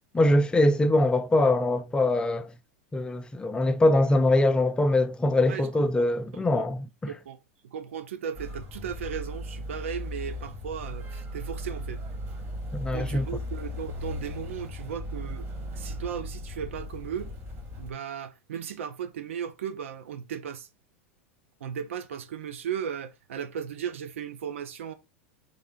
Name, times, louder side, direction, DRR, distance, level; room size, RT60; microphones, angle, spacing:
voice 1, 0.1-2.5 2.9-7.1 12.7-13.3, left 1 dB, 15° left, 0.4 m, -23 dB
voice 2, 5.5-6.0 6.4-6.7 7.1-7.4 7.7-12.0 12.9-15.5 15.7-17.3 17.8-20.7 21.6-24.9, right 8 dB, 75° right, 0.7 m, -36 dB
Motor vehicle (road), 8.3-17.9, left 1 dB, 40° right, 2.0 m, -37 dB
3.7 x 3.4 x 3.7 m
hypercardioid pair, 100°, 7 cm